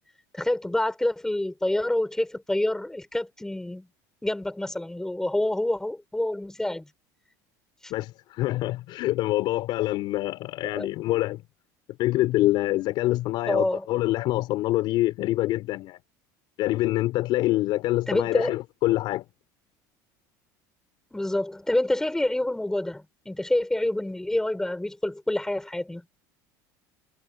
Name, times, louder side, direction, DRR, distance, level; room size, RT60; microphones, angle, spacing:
voice 1, 0.3-3.9 4.2-6.9 7.8-7.9 10.7-10.9 13.5-13.9 18.1-18.5 21.1-26.0, left 1 dB, 5° left, 7.1 m, -27 dB
voice 2, 7.9-11.4 12.0-16.0 16.6-19.2, left 16 dB, 55° left, 4.8 m, -25 dB
supercardioid pair, 130°, 9 cm